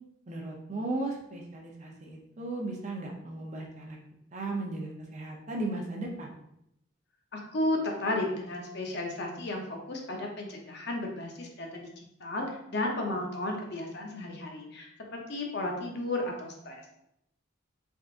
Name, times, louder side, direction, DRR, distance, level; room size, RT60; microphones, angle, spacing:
voice 1, 0.3-4.0 4.3-6.4, right 2 dB, 35° right, 0 dB, 0.6 m, -36 dB
voice 2, 7.3-11.8 12.2-16.9, left 1 dB, 55° left, 1 dB, 0.7 m, -33 dB
3.9 x 3.5 x 2.5 m, 0.80 s
head